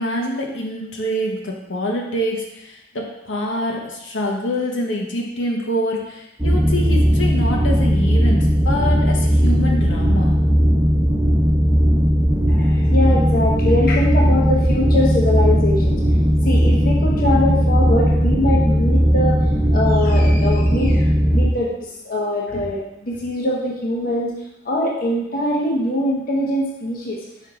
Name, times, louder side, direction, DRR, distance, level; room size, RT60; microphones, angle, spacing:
voice 1, 0.0-10.3, equal, 80° left, -1 dB, 1.0 m, -25 dB
sound 1, 6.4-21.5, equal, 10° right, 0.9 m, -17 dB
voice 2, 12.5-16.0 16.4-19.4 19.7-24.3 24.6-27.2, left 1 dB, 50° left, -2 dB, 0.9 m, -22 dB
5.6 x 4.5 x 3.7 m, 0.88 s
head